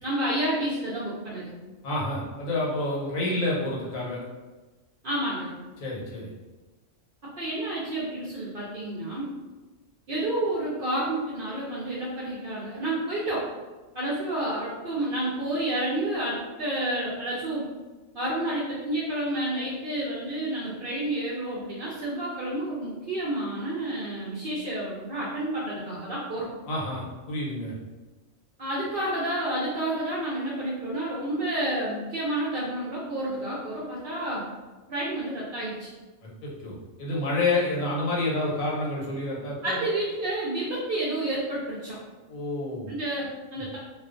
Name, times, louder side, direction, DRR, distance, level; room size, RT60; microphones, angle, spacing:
voice 1, 0.0-1.5 5.0-5.5 7.4-9.3 10.1-13.4 13.9-17.7 18.1-26.5 28.6-34.5 34.9-35.9 39.6-42.0 42.9-43.8, right 1 dB, 60° right, -6 dB, 0.5 m, -30 dB
voice 2, 1.8-4.2 5.8-6.3 26.7-27.7 36.4-39.8 42.3-42.9, left 2 dB, 85° left, -4 dB, 1.2 m, -29 dB
2.3 x 2.3 x 2.4 m, 1.2 s
omnidirectional pair, 1.4 m